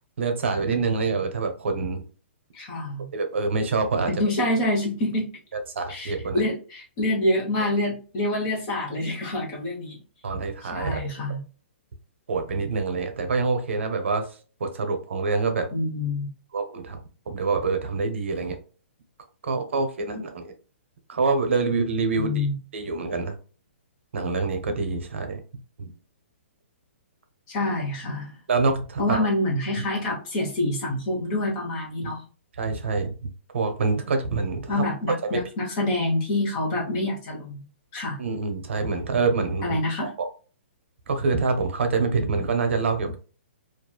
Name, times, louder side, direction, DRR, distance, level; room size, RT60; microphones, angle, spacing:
voice 1, 0.2-2.0 3.1-4.1 5.8-6.4 10.2-11.4 12.3-14.3 14.6-15.7 16.5-18.6 19.4-20.5 21.1-22.5 22.7-23.3 24.1-25.4 25.8-25.9 28.5-29.3 32.0-32.1 32.6-33.1 33.5-34.8 35.3-35.4 38.2-40.3 41.1-43.2, right 4 dB, 70° right, 6 dB, 0.7 m, -26 dB
voice 2, 2.5-3.1 4.1-5.3 5.9-10.0 10.6-11.4 15.7-16.3 22.2-22.6 27.5-28.4 29.0-32.2 34.7-37.6 37.9-38.2 39.6-40.1, left 1 dB, 25° left, -2 dB, 1.0 m, -26 dB
2.9 x 2.4 x 2.3 m, 0.37 s
hypercardioid pair, 165°, 7 cm